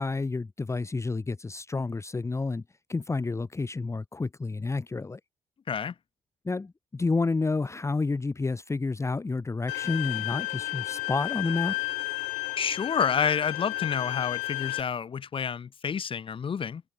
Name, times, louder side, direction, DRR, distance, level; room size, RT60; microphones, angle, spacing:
voice 1, 0.0-2.6 2.9-5.2 6.4-11.8, left 3 dB, 20° left, 1.1 m, -30 dB
Bowed string instrument, 9.7-14.8, left 22 dB, 70° left, 1.1 m, -32 dB
voice 2, 12.6-16.8, left 7 dB, 40° left, 1.4 m, -29 dB
figure-of-eight pair, 45°, 14 cm